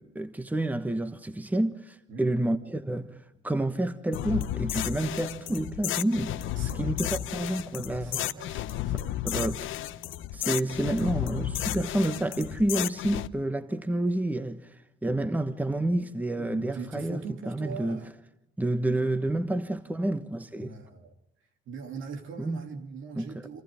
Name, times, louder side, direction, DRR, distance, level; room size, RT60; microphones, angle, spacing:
voice 1, 0.0-3.2 3.4-6.4 6.7-8.6 9.2-9.7 10.3-14.7 15.0-18.0 18.6-20.7 22.4-22.7 23.2-23.3, right 1 dB, 10° right, 1.2 m, -29 dB
sound 1, 4.1-13.3, left 14 dB, 85° left, 0.7 m, -33 dB
Bass guitar, 5.0-11.3, right 4 dB, 60° right, 4.3 m, -50 dB
voice 2, 6.6-7.0 8.0-9.2 16.0-18.1 20.6-21.1 21.7-23.6, right 5 dB, 80° right, 2.9 m, -42 dB
27.5 x 27.0 x 3.7 m
cardioid pair, 90°, 20 cm